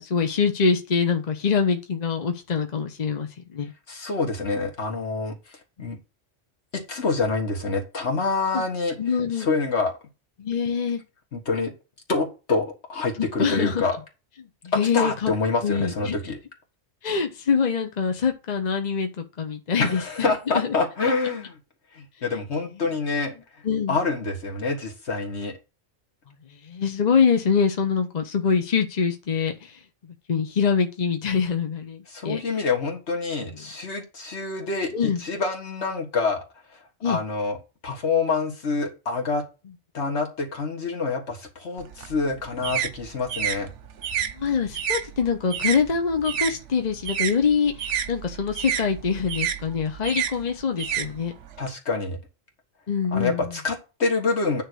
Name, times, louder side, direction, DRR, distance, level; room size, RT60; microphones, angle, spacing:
voice 1, 0.0-3.7 5.8-5.9 8.5-8.6 9.0-9.5 10.4-11.0 13.2-13.9 14.6-15.3 15.6-16.3 17.0-20.0 20.5-20.7 23.6-24.0 26.6-29.8 30.3-32.4 33.4-33.5 34.9-35.2 37.0-37.2 44.2-51.3 52.9-53.5, left 6 dB, 40° left, 0.9 m, -24 dB
voice 2, 3.9-6.0 6.7-9.0 9.4-9.9 11.3-11.7 12.1-14.0 14.9-16.4 19.8-21.5 21.9-23.3 23.9-25.5 32.1-36.4 37.0-37.6 37.8-39.4 39.9-43.7 51.6-52.2 53.1-54.6, left 4 dB, 70° left, 2.0 m, -26 dB
sound 1, 41.8-46.6 46.9-51.7, right 9 dB, 80° right, 1.1 m, -30 dB
9.6 x 3.2 x 6.2 m
omnidirectional pair, 1.2 m